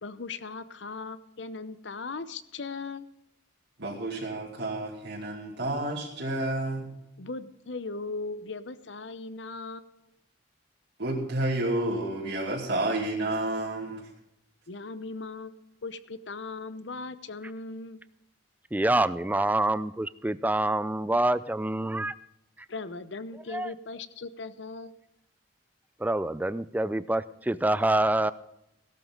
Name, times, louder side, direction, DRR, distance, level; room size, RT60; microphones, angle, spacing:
voice 1, 0.0-3.1 7.2-9.9 14.7-18.0 22.7-24.9, left 3 dB, 65° left, 14 dB, 0.8 m, -38 dB
voice 2, 3.8-6.9 11.0-14.1, right 1 dB, 60° right, -3 dB, 2.4 m, -30 dB
voice 3, 18.7-22.1 23.5-23.7 26.0-28.3, right 1 dB, 10° right, 16 dB, 0.4 m, -26 dB
17.0 x 12.5 x 3.8 m, 0.82 s
head